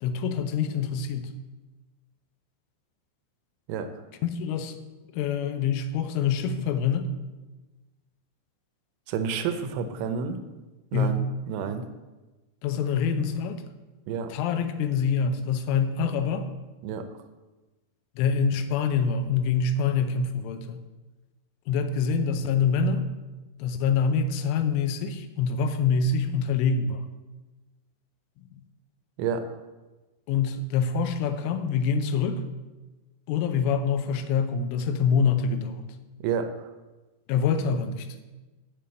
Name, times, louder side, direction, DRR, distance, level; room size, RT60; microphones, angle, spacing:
voice 1, 0.0-1.3 4.2-4.8 5.1-7.1 10.9-11.2 12.6-13.6 14.3-16.5 18.2-20.8 21.7-23.1 23.6-27.1 30.3-32.4 33.3-35.9 37.3-38.1, left 5 dB, 85° left, 8 dB, 3.3 m, -25 dB
voice 2, 9.1-10.4 10.9-11.9 14.1-14.3 16.8-17.1 29.2-29.6 36.2-36.7, right 6 dB, 80° right, 9 dB, 3.1 m, -30 dB
7.0 x 7.0 x 7.6 m, 1.2 s
omnidirectional pair, 5.5 m